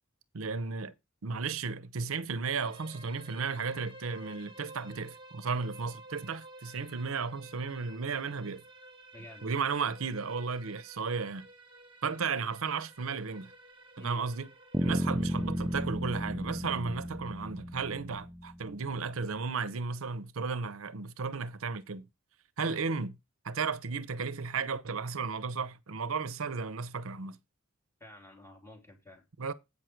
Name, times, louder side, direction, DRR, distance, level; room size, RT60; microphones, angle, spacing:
voice 1, 0.3-0.9 1.2-8.6 9.4-11.5 12.0-13.5 14.0-14.5 14.8-22.1 22.6-23.2 23.4-27.4 29.4-29.5, right 5 dB, 75° right, 0.7 m, -34 dB
sound 1, 2.6-15.9, right 2 dB, 25° right, 1.4 m, -53 dB
voice 2, 9.1-9.5 14.0-14.3 22.6-22.8 28.0-29.2, left 1 dB, 15° left, 3.2 m, -50 dB
sound 2, 14.7-18.7, equal, 5° right, 0.5 m, -33 dB
8.6 x 6.3 x 4.5 m
head